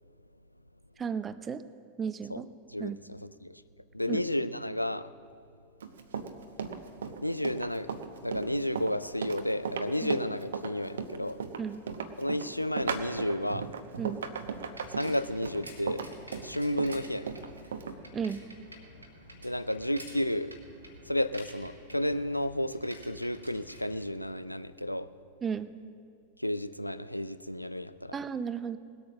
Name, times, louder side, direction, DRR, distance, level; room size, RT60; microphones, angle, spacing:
voice 1, 1.0-1.6 2.0-2.5 2.8-3.0 4.1-4.2 10.0-10.1 11.6-11.8 14.0-14.2 18.1-18.4 25.4-25.7 28.1-28.8, right 6 dB, 20° right, 14 dB, 0.5 m, -34 dB
voice 2, 2.7-3.6 3.9-5.1 7.2-7.9 8.2-11.4 12.2-13.7 14.9-16.0 16.4-17.5 19.4-20.5 21.1-25.1 26.4-28.2, left 1 dB, 90° left, 14 dB, 0.4 m, -32 dB
Run, 5.8-18.0, right 6 dB, 65° right, 0.8 m, -36 dB
Bicycle, 13.7-24.6, equal, 85° right, 1.6 m, -50 dB
19.0 x 8.4 x 6.1 m, 2.3 s
figure-of-eight pair, 90°, 0 cm